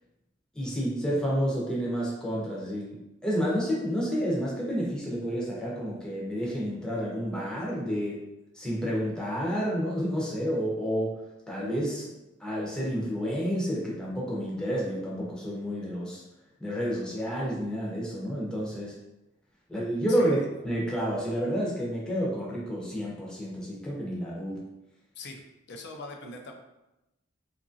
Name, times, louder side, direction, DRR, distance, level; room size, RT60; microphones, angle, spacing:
voice 1, 0.5-3.0 3.2-8.2 8.5-12.1 12.4-16.2 16.6-18.9 19.7-20.4 20.6-24.6, equal, 5° left, -5 dB, 0.7 m, -30 dB
voice 2, 20.1-20.5 25.2-25.4 25.7-26.5, left 3 dB, 60° left, 3 dB, 0.5 m, -41 dB
2.8 x 2.5 x 2.6 m, 0.95 s
head